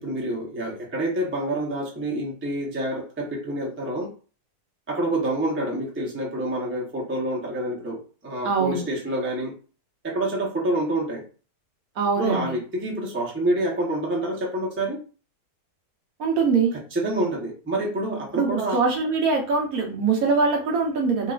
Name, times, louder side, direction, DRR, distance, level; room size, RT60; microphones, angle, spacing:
voice 1, 0.0-4.1 4.9-9.5 10.0-11.2 12.2-15.0 16.7-18.8, right 1 dB, 15° right, -2 dB, 0.4 m, -27 dB
voice 2, 8.4-8.9 12.0-12.5 16.2-16.7 18.3-21.3, right 4 dB, 65° right, 0 dB, 1.2 m, -23 dB
3.9 x 2.4 x 2.4 m, 0.36 s
omnidirectional pair, 1.7 m